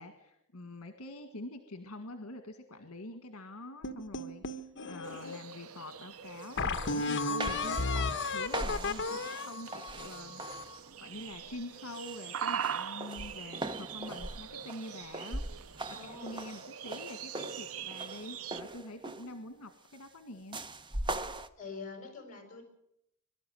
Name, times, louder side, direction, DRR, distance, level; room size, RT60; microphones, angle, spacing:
voice 1, 0.0-10.4 11.0-15.4 16.0-20.6, left 1 dB, 75° left, 8 dB, 1.8 m, -46 dB
sound 1, 3.8-5.4 5.9-6.0 6.6-10.8, left 3 dB, 55° left, 1.3 m, -34 dB
sound 2, 5.0-18.6, right 8 dB, 70° right, 0.7 m, -43 dB
sound 3, 6.4-6.5 6.8-10.8 11.2-11.6 11.9-19.4 20.5-21.5, right 2 dB, 20° right, 0.9 m, -41 dB
voice 2, 15.9-16.4 21.6-22.6, left 4 dB, 40° left, 4 dB, 6.8 m, -45 dB
23.5 x 12.5 x 9.3 m, 0.80 s
head